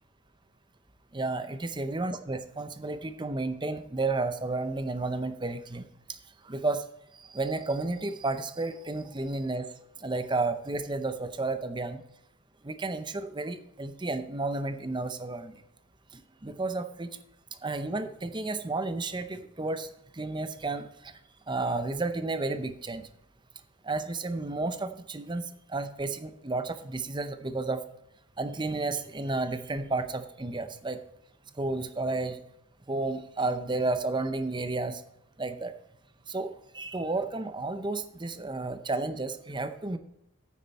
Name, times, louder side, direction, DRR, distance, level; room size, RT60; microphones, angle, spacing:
voice 1, 1.1-6.2 6.4-6.8 7.1-9.7 10.0-12.0 12.6-15.5 16.1-17.2 17.6-21.1 21.5-23.1 23.8-27.8 28.4-31.0 31.6-32.4 32.9-35.0 35.4-35.7 36.3-40.0, right 3 dB, 20° right, 10 dB, 0.7 m, -32 dB
9.4 x 9.1 x 4.3 m, 0.83 s
head